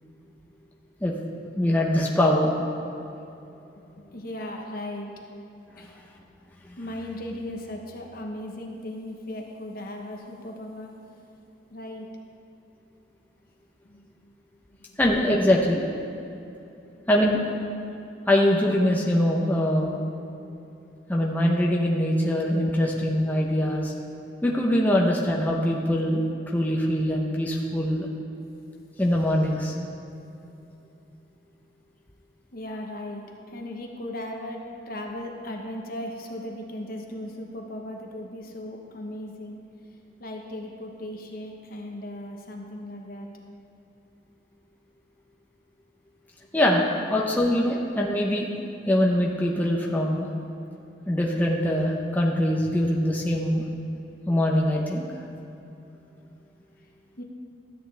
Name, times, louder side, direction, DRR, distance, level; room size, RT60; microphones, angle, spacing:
voice 1, 1.6-2.6 6.6-6.8 15.0-15.9 17.1-17.4 18.3-20.0 21.1-23.9 24.4-28.1 29.0-29.7 46.5-48.5 48.9-50.3 51.1-53.6 54.3-55.1, left 1 dB, 10° left, -2 dB, 0.7 m, -23 dB
voice 2, 4.0-5.1 5.8-6.0 6.8-10.9 11.7-12.1 13.8-14.3 14.9-15.0 32.5-39.6 40.2-43.3 57.2-57.3, left 1 dB, 55° left, 2 dB, 1.1 m, -37 dB
13.0 x 9.0 x 3.3 m, 2.8 s
head